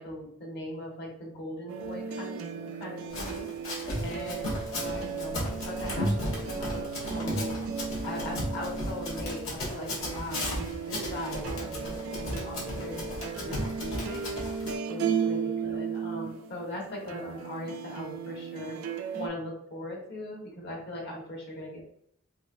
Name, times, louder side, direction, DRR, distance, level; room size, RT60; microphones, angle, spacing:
voice 1, 0.0-3.5 4.0-6.8 7.1-7.6 8.0-13.5 13.8-14.2 14.9-18.8 19.1-21.8, left 1 dB, 55° left, -2 dB, 1.2 m, -39 dB
sound 1, 1.7-19.3, right 6 dB, 80° right, 0.4 m, -36 dB
Run, 3.1-14.7, left 1 dB, 80° left, 1.2 m, -35 dB
4.2 x 2.6 x 2.5 m, 0.69 s
head